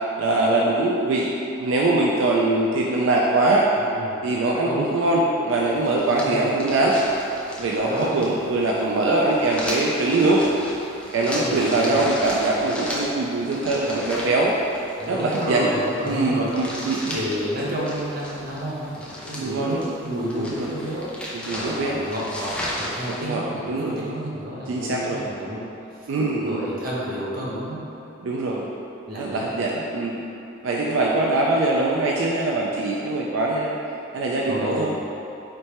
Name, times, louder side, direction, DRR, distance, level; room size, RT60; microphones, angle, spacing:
voice 1, 0.2-1.3 1.6-3.7 4.2-7.0 7.6-10.4 11.1-14.5 15.1-15.7 16.0-17.2 19.4-19.8 20.4-20.7 21.3-22.0 23.1-23.4 23.7-24.0 24.7-25.2 26.1-26.7 28.2-28.7 29.2-30.2 30.6-33.8 34.1-35.0, right 2 dB, 75° right, -3 dB, 0.3 m, -22 dB
voice 2, 3.8-4.3 4.6-4.9 6.2-6.5 7.9-8.3 11.4-12.0 15.0-16.5 17.1-25.6 25.9-26.1 26.4-27.8 28.2-28.3 29.1-29.5 34.5-34.9, equal, 45° right, -6 dB, 0.8 m, -30 dB
sound 1, 5.5-23.2, left 1 dB, 5° left, 0.4 m, -35 dB
3.2 x 3.1 x 4.3 m, 2.8 s
head